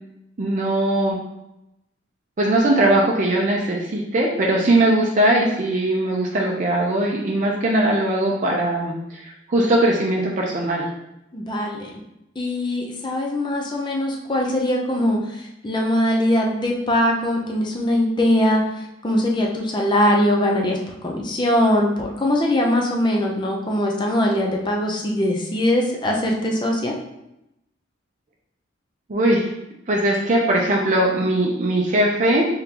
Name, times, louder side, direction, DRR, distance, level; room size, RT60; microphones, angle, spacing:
voice 1, 0.4-1.2 2.4-10.8 29.1-29.5 29.9-32.5, right 1 dB, 40° right, -2 dB, 0.5 m, -20 dB
voice 2, 11.3-12.0 12.4-18.6 19.0-26.9, left 1 dB, 25° left, 0 dB, 0.6 m, -21 dB
3.7 x 3.6 x 2.9 m, 0.87 s
head